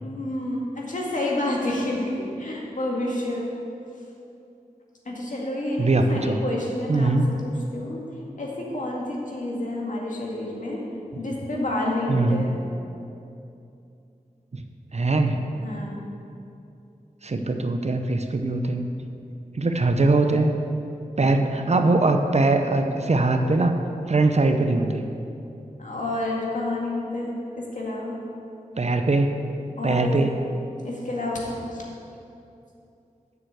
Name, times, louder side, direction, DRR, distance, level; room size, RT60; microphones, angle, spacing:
voice 1, 0.0-3.5 5.1-8.0 8.4-10.8 11.2-12.6 15.5-16.0 25.8-28.2 29.8-30.1 30.8-31.8, left 1 dB, 60° left, -3 dB, 2.1 m, -29 dB
voice 2, 5.8-6.4 6.9-7.3 12.1-12.4 14.9-15.4 17.2-18.9 19.5-20.5 21.2-23.7 24.1-25.1 28.8-29.3 29.8-30.3, right 2 dB, 50° right, 6 dB, 0.7 m, -21 dB
7.3 x 6.5 x 7.9 m, 2.7 s
cardioid pair, 50°, 15 cm